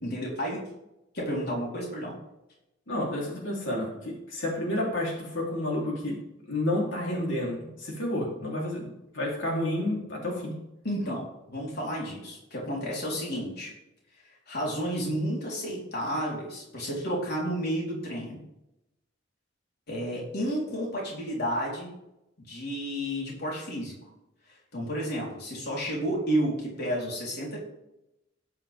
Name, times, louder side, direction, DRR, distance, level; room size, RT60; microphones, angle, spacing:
voice 1, 0.0-0.7 1.1-2.2 10.8-13.7 14.2-18.4 19.9-21.9 22.4-24.0 24.7-27.6, equal, 60° left, -3 dB, 4.2 m, -31 dB
voice 2, 2.9-6.2 6.5-10.5, left 1 dB, 85° left, -3 dB, 3.6 m, -30 dB
15.0 x 10.5 x 3.7 m, 0.87 s
head